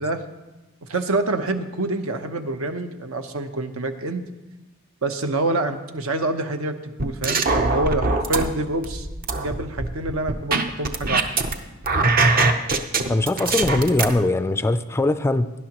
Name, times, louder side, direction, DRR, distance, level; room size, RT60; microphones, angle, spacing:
voice 1, 0.9-4.2 5.0-9.1 9.3-11.2, right 2 dB, 70° right, 7 dB, 0.9 m, -26 dB
sound 1, 7.0-8.4 8.8-11.5 11.8-14.1, right 3 dB, 40° right, 0.7 m, -21 dB
voice 2, 13.1-15.5, left 2 dB, 10° left, 11 dB, 0.3 m, -21 dB
17.5 x 11.0 x 3.0 m, 1.1 s
head